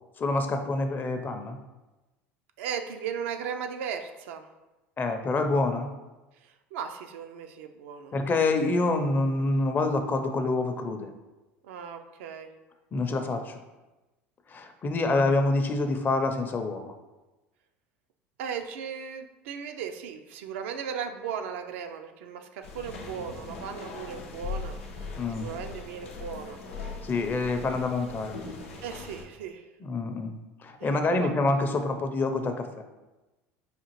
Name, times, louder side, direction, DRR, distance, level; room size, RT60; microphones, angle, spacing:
voice 1, 0.2-1.6 5.0-5.9 8.1-11.1 12.9-13.6 14.5-16.9 25.2-25.5 27.0-28.4 29.8-30.4 30.6-32.7, left 2 dB, 30° left, 6 dB, 0.5 m, -27 dB
voice 2, 2.6-4.5 6.4-8.2 11.6-12.5 18.4-25.1 25.4-26.6 28.8-29.7 30.8-31.3, right 7 dB, 80° right, 6 dB, 0.3 m, -37 dB
sound 1, 22.6-29.2, left 4 dB, 90° left, 0.6 m, -40 dB
4.9 x 2.4 x 3.0 m, 1.1 s
hypercardioid pair, 85°, 7 cm